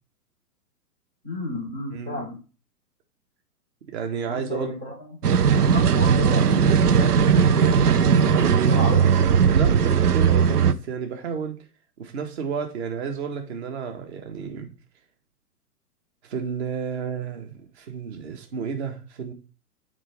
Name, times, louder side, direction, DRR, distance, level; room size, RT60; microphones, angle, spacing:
voice 1, 1.2-2.4 4.3-4.9 5.2-7.7 8.7-9.1, left 1 dB, 10° right, 0.3 m, -33 dB
voice 2, 3.9-4.7 8.0-8.9 9.5-11.6 12.0-14.7 16.2-19.3, right 6 dB, 45° right, 1.7 m, -31 dB
sound 1, 5.2-10.7, right 6 dB, 75° right, 0.7 m, -18 dB
7.2 x 4.8 x 3.5 m
figure-of-eight pair, 115°, 46 cm